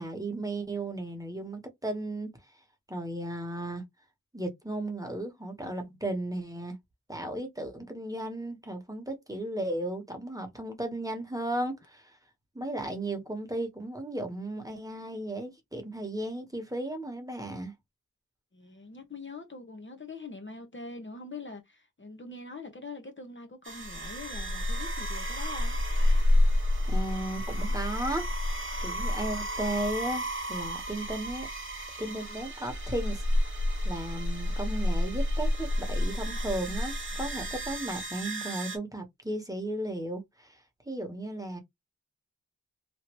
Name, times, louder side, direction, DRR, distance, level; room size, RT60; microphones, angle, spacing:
voice 1, 0.0-2.3 2.9-3.8 4.3-6.8 7.1-12.2 12.5-17.7 26.9-31.5 32.0-33.2 33.8-40.6 40.8-41.6, right 1 dB, 10° right, 1.2 m, -35 dB
voice 2, 18.5-25.7, left 3 dB, 40° left, 0.9 m, -43 dB
sound 1, 23.6-38.8, left 1 dB, 40° right, 1.3 m, -30 dB
3.1 x 2.7 x 3.0 m
wide cardioid pair, 55°, 31 cm